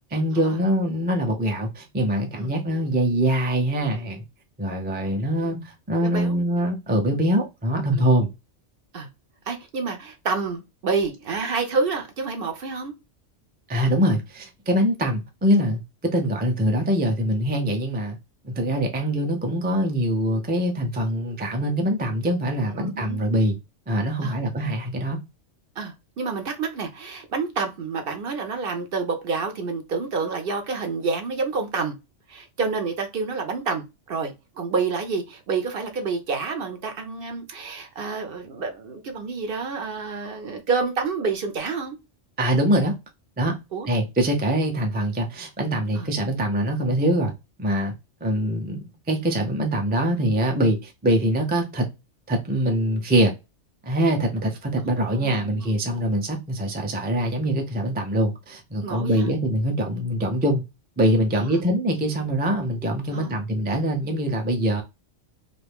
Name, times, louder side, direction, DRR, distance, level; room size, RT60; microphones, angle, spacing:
voice 1, 0.1-4.2 4.6-8.3 13.7-18.2 18.4-23.6 23.9-25.2 42.4-42.9 43.4-43.5 43.9-47.3 47.6-47.9 48.2-51.9 52.3-53.3 53.8-60.6 61.0-64.8, equal, 15° right, 0.3 m, -23 dB
voice 2, 9.5-12.9 22.8-23.2 24.2-24.4 25.8-32.0 32.3-42.0 43.7-43.9 45.9-46.1 55.1-55.7 58.8-59.3 61.3-61.6 63.1-63.3, right 4 dB, 55° right, 0.8 m, -28 dB
2.6 x 2.5 x 3.4 m
omnidirectional pair, 1.2 m